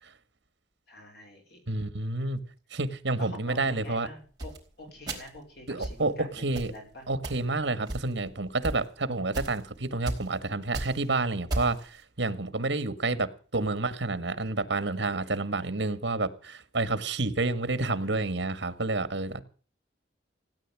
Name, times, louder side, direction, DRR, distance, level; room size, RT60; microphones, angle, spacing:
voice 1, 0.9-1.6 3.2-7.1 17.4-18.4, left 1 dB, 60° left, 2 dB, 4.6 m, -47 dB
voice 2, 1.7-2.4 2.7-4.1 5.7-6.7 7.1-19.4, right 2 dB, 70° right, 13 dB, 1.6 m, -29 dB
sound 1, 4.4-4.6 5.1-5.4 5.8-6.0 6.5-6.8 7.2-7.4 7.9-8.3 8.6-8.8 9.3-9.6 10.1-10.3 10.6-11.0 11.5-11.8, right 1 dB, 20° right, 4.6 m, -33 dB
17.0 x 9.8 x 7.4 m, 0.40 s
head